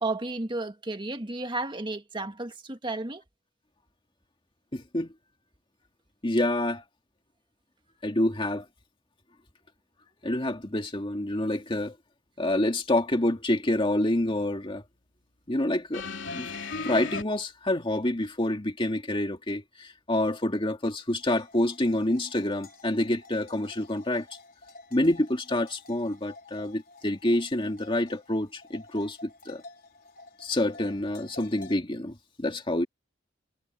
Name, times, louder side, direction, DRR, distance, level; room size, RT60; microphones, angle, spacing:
voice 1, 0.0-3.2, right 2 dB, 25° right, 1.8 m, -32 dB
voice 2, 4.7-5.1 6.2-6.8 8.0-8.7 10.2-12.0 12.4-14.8 15.5-16.5 16.8-24.3 24.9-29.6 30.4-32.9, left 1 dB, 25° left, 2.2 m, -27 dB
sound 1, 15.9-17.2 18.2-18.3, left 4 dB, 75° left, 3.4 m, -35 dB
sound 2, 21.2-31.8, left 3 dB, 50° left, 4.6 m, -51 dB
head